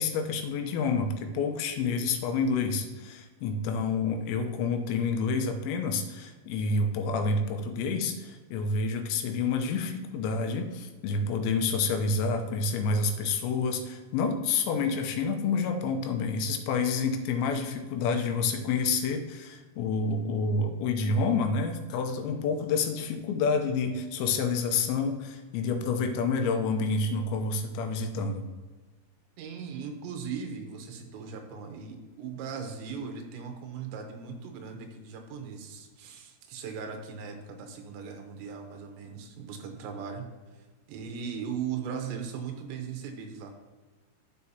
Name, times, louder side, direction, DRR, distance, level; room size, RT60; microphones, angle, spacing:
voice 1, 0.0-28.4, left 4 dB, 85° left, 6 dB, 3.0 m, -28 dB
voice 2, 29.4-40.3 40.5-43.5, right 6 dB, 85° right, 5 dB, 3.2 m, -38 dB
13.5 x 4.8 x 2.8 m, 1.3 s
omnidirectional pair, 5.1 m